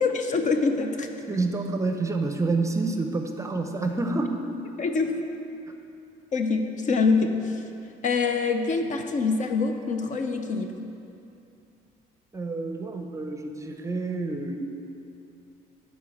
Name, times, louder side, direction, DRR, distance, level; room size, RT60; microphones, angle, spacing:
voice 1, 0.0-1.1 4.8-5.1 6.3-7.6 8.0-10.7, left 4 dB, 45° left, 6 dB, 0.7 m, -25 dB
voice 2, 1.3-4.4 12.3-14.6, right 3 dB, 20° right, 5 dB, 0.6 m, -28 dB
10.0 x 4.1 x 7.1 m, 2.8 s
cardioid pair, 110°, 17 cm